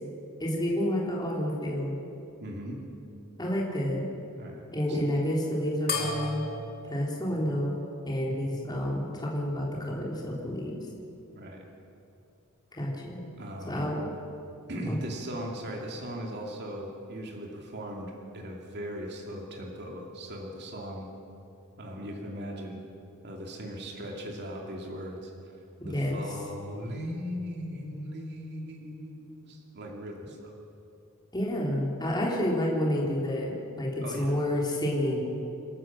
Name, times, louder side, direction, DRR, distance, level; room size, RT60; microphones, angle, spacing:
voice 1, 0.4-2.0 3.4-4.1 4.7-6.4 6.9-7.8 8.0-10.8 12.7-13.2 13.7-14.1 14.9-15.0 25.8-26.2 31.3-35.2, equal, 20° left, -3 dB, 3.2 m, -29 dB
voice 2, 2.4-2.8 4.4-5.0 11.3-11.6 13.4-13.9 14.7-21.1 21.8-22.8 23.2-25.3 25.8-30.5 34.0-34.4, equal, 50° right, 0 dB, 2.7 m, -38 dB
sound 1, 5.9-8.7, left 4 dB, 45° left, 3.0 m, -37 dB
28.0 x 12.5 x 7.6 m, 2.8 s
head